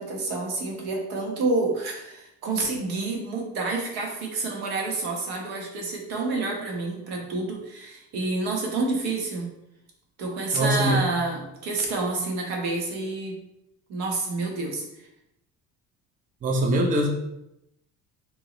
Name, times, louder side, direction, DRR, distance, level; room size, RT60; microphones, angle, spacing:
voice 1, 0.0-9.5 10.2-13.4 13.9-15.1, right 3 dB, 80° right, 0 dB, 1.1 m, -28 dB
voice 2, 10.5-11.1 16.4-17.1, right 1 dB, 25° right, 2 dB, 0.5 m, -22 dB
2.9 x 2.9 x 3.8 m, 0.85 s
cardioid pair, 115°, 37 cm